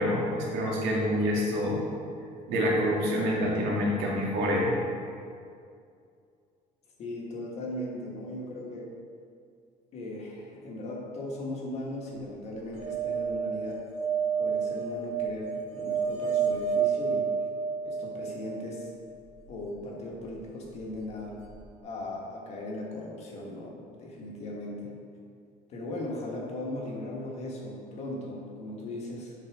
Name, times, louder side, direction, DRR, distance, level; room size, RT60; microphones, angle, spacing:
voice 1, 0.0-1.8 2.5-4.7, equal, 85° right, -4 dB, 2.0 m, -27 dB
voice 2, 7.0-8.9 9.9-13.8 14.4-17.3 17.8-18.9 19.5-21.3 21.8-24.9 25.7-29.3, left 1 dB, 40° left, -2 dB, 1.4 m, -38 dB
sound 1, 12.7-18.9 21.2-21.3 21.5-21.6, right 6 dB, 45° right, 1.2 m, -30 dB
7.8 x 4.1 x 6.0 m, 2.3 s
cardioid pair, 170°, 17 cm